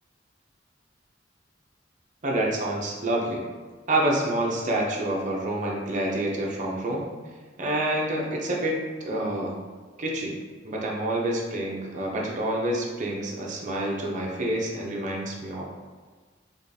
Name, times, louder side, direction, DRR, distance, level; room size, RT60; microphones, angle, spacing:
voice 1, 2.2-3.4 3.9-7.1 7.6-9.6 10.0-10.4 10.6-15.6, right 1 dB, 45° right, -2 dB, 0.6 m, -27 dB
4.9 x 2.3 x 2.6 m, 1.5 s
head